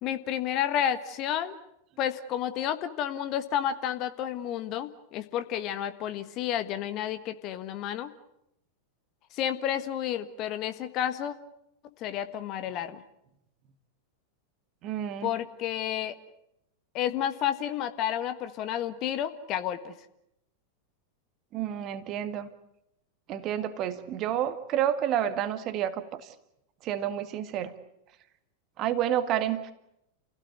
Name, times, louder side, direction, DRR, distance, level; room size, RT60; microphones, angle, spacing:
voice 1, 0.0-1.6 2.0-8.1 9.3-11.4 12.0-13.0 15.2-16.2 16.9-19.9, left 10 dB, 40° left, 10 dB, 1.5 m, -31 dB
voice 2, 14.8-15.3 21.5-22.5 23.3-26.3 26.8-27.7 28.8-29.7, right 10 dB, 35° right, 10 dB, 1.8 m, -29 dB
29.0 x 17.0 x 9.4 m, 0.82 s
figure-of-eight pair, 90°, 0 cm